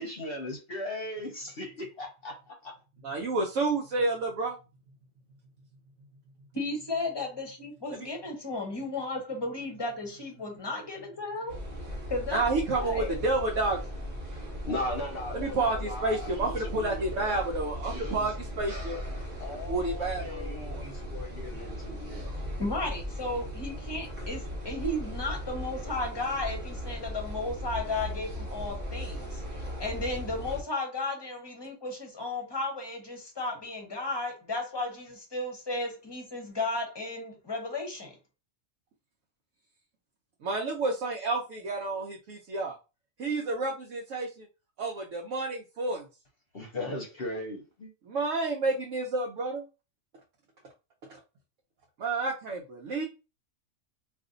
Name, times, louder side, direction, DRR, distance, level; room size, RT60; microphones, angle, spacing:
voice 1, 0.0-2.7 10.2-10.3 11.7-11.8 13.6-14.2 14.6-17.4 17.8-18.3 19.4-22.4 46.5-47.9 52.9-53.1, left 1 dB, 50° left, 0.9 m, -38 dB
voice 2, 3.0-4.5 8.0-8.1 12.3-13.8 15.3-19.0 19.7-20.9 40.4-42.7 43.2-44.5 44.8-46.0 48.1-49.6 52.0-53.1, right 3 dB, 70° right, 1.0 m, -30 dB
voice 3, 6.5-11.6 12.1-13.3 22.6-38.1, left 2 dB, 25° left, 0.8 m, -34 dB
sound 1, 11.5-30.6, equal, 35° right, 1.0 m, -37 dB
2.6 x 2.5 x 3.7 m
omnidirectional pair, 1.4 m